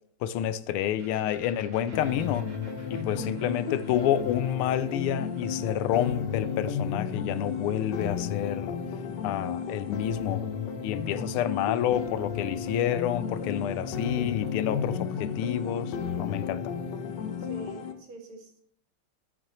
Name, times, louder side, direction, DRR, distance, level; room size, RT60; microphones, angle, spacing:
voice 1, 0.2-2.5 2.9-8.8 9.2-10.4 10.8-16.7, left 11 dB, 80° left, 1.5 m, -29 dB
sound 1, 1.0-8.5, right 2 dB, 55° right, 2.5 m, -56 dB
sound 2, 1.9-17.9, left 6 dB, 65° left, 1.3 m, -33 dB
voice 2, 2.8-3.3 17.5-18.6, right 2 dB, 70° right, 2.6 m, -44 dB
14.5 x 6.1 x 3.0 m
omnidirectional pair, 2.4 m